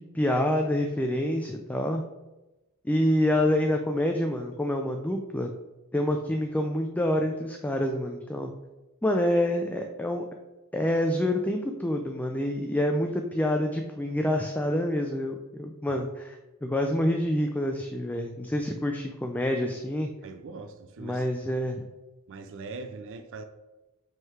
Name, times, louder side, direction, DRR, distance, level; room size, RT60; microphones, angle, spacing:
voice 1, 0.0-2.0 2.8-5.5 5.9-8.5 9.0-10.2 10.7-20.1 21.0-21.8, left 1 dB, 5° left, 3 dB, 0.3 m, -27 dB
voice 2, 20.2-21.3 22.3-23.4, right 3 dB, 60° right, 8 dB, 0.4 m, -41 dB
5.4 x 3.8 x 4.6 m, 1.0 s
head